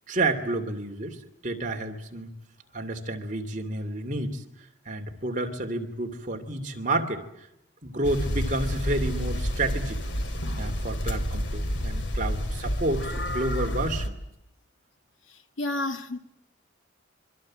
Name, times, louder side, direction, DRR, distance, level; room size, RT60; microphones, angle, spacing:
voice 1, 0.1-1.2 1.4-2.3 2.7-4.4 4.9-7.2 7.8-10.0 10.6-14.2, right 2 dB, 40° right, 2.8 m, -30 dB
sound 1, 8.0-14.1, equal, 65° left, 2.4 m, -29 dB
voice 2, 15.3-16.2, left 2 dB, 85° left, 2.2 m, -31 dB
26.5 x 24.5 x 7.6 m
head